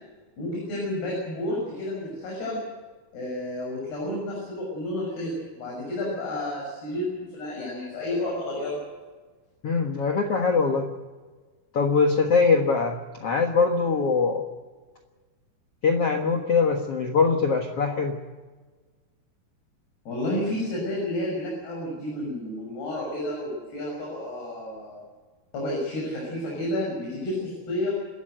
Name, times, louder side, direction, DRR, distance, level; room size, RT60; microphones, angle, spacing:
voice 1, 0.4-2.6 3.1-8.8 20.1-25.0 25.5-27.9, left 1 dB, 80° left, -3 dB, 8.4 m, -31 dB
voice 2, 9.6-10.9 11.7-14.4 15.8-18.2, left 4 dB, 50° left, 4 dB, 1.9 m, -22 dB
28.5 x 13.5 x 7.9 m, 1.4 s
omnidirectional pair, 4.5 m